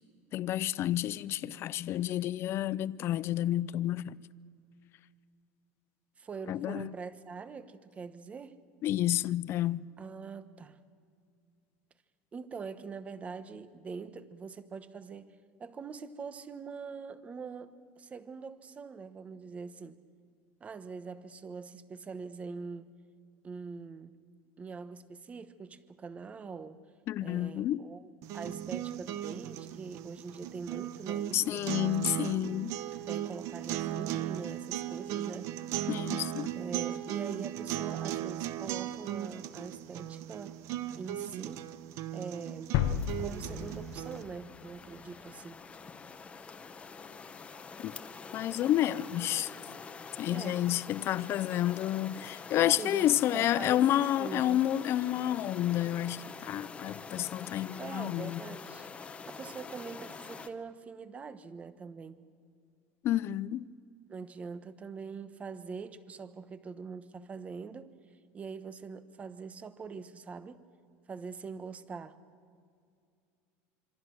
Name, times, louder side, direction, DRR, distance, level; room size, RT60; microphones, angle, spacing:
voice 1, 0.3-4.2 6.5-6.9 8.8-9.9 27.1-27.8 31.3-32.8 35.9-36.5 47.8-48.0 48.3-49.6 50.2-58.4 63.0-63.7, left 13 dB, 40° left, 0.6 m, -30 dB
voice 2, 6.2-8.6 10.0-10.8 12.3-15.3 15.6-20.0 20.6-22.9 23.4-24.2 24.6-26.8 27.2-31.9 32.3-32.6 33.1-35.5 36.5-40.6 41.0-41.7 42.1-42.7 43.2-45.6 50.3-50.6 52.6-54.6 57.8-62.2 64.1-67.9 68.3-70.6 71.1-72.2, right 5 dB, 20° right, 1.1 m, -43 dB
sound 1, 28.2-44.2, right 12 dB, 50° right, 1.0 m, -37 dB
sound 2, 42.7-44.6, left 10 dB, 60° left, 1.1 m, -32 dB
sound 3, 42.8-60.5, left 5 dB, 20° left, 1.1 m, -46 dB
26.5 x 24.5 x 6.4 m
supercardioid pair, 145°, 7 cm